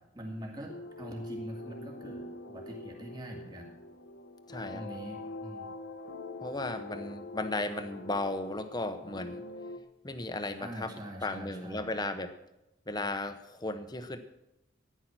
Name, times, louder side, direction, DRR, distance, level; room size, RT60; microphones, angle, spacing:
voice 1, 0.1-3.7 4.7-5.7 10.6-11.9, equal, 20° right, 0 dB, 2.3 m, -43 dB
sound 1, 0.7-9.8, left 2 dB, 75° left, 1.0 m, -44 dB
voice 2, 4.5-4.8 6.4-9.4 10.0-10.9 11.2-12.3 12.9-14.2, left 2 dB, 20° left, 9 dB, 1.0 m, -35 dB
14.5 x 10.5 x 6.2 m, 0.91 s
head